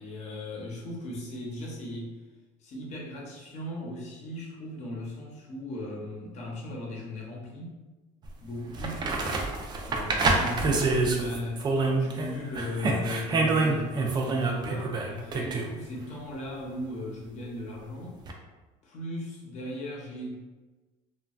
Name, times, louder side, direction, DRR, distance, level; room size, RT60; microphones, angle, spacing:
voice 1, 0.0-2.1 2.6-7.7 8.4-9.0 9.9-11.6 12.0-18.2 18.8-20.3, left 1 dB, 50° left, -2 dB, 0.8 m, -37 dB
sound 1, 8.2-8.3 8.7-12.3 12.5-15.7 18.3-18.4, right 3 dB, 30° right, 0.3 m, -27 dB
3.0 x 2.3 x 2.3 m, 1.2 s
cardioid pair, 135°, 15 cm